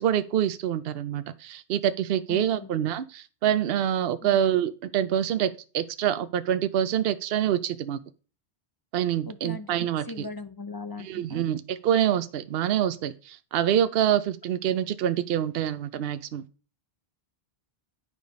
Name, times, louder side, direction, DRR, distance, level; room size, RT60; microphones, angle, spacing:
voice 1, 0.0-8.0 8.9-10.0 11.0-16.4, right 10 dB, 70° right, 0.8 m, -26 dB
voice 2, 2.3-2.7 4.2-4.4 9.3-11.5, left 3 dB, 30° left, 0.5 m, -39 dB
10.5 x 4.9 x 5.2 m
omnidirectional pair, 1.1 m